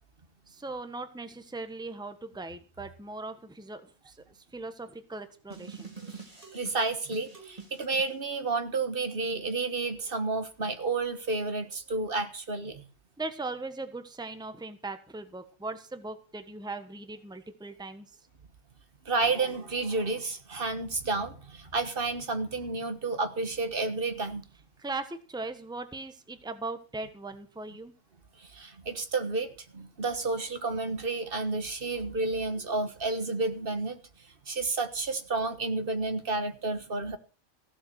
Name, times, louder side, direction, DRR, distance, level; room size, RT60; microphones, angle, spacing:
voice 1, 0.5-5.9 13.2-18.1 24.8-27.9, right 3 dB, 5° right, 9 dB, 1.2 m, -39 dB
sound 1, 5.5-8.1, right 5 dB, 25° right, 2.6 m, -46 dB
voice 2, 6.5-12.8 19.0-24.4 28.4-34.0 34.5-37.2, right 3 dB, 40° right, 9 dB, 1.6 m, -31 dB
15.5 x 7.2 x 7.9 m, 0.37 s
omnidirectional pair, 1.5 m